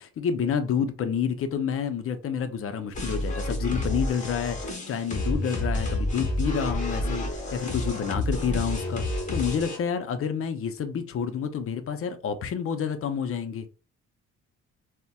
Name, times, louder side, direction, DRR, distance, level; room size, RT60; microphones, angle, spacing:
voice 1, 0.0-13.7, left 7 dB, 50° left, 0.5 m, -29 dB
sound 1, 2.9-9.8, left 1 dB, 25° left, 1.0 m, -29 dB
3.9 x 2.1 x 2.3 m
cardioid pair, 90°, 30 cm